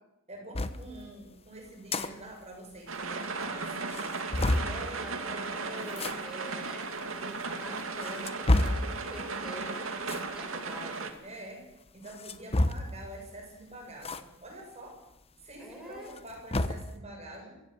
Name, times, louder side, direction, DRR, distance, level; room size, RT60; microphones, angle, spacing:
voice 1, 0.3-4.1 5.0-6.4 11.2-11.7 11.9-15.0 15.4-17.6, right 1 dB, 30° right, 1 dB, 7.4 m, -46 dB
sound 1, 0.5-0.8 1.7-2.1 2.4-2.5 2.8-2.9 3.4-3.5 3.9-4.7 5.9-6.1 7.0-7.1 7.8-8.9 10.0-10.3 12.1-13.0 14.0-14.2 14.6-14.7 16.0-16.9, left 1 dB, 30° left, 1.1 m, -28 dB
sound 2, 2.9-11.1, right 4 dB, 75° right, 2.5 m, -36 dB
voice 2, 4.5-11.1 15.6-16.2, equal, 5° right, -2 dB, 4.7 m, -45 dB
24.0 x 15.5 x 8.2 m, 0.91 s
head